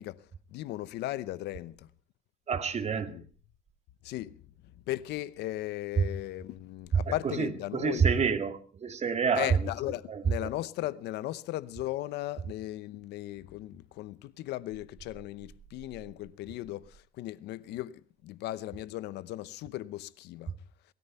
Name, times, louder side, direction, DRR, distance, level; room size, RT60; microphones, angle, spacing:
voice 1, 0.0-1.9 3.1-3.2 4.0-4.4 4.6-8.1 9.3-20.5, left 15 dB, 85° left, 0.8 m, -37 dB
voice 2, 2.5-3.2 6.0-6.1 6.9-9.7 10.1-10.5, right 6 dB, 40° right, 2.1 m, -28 dB
19.0 x 13.5 x 5.5 m
cardioid pair, 110°, 17 cm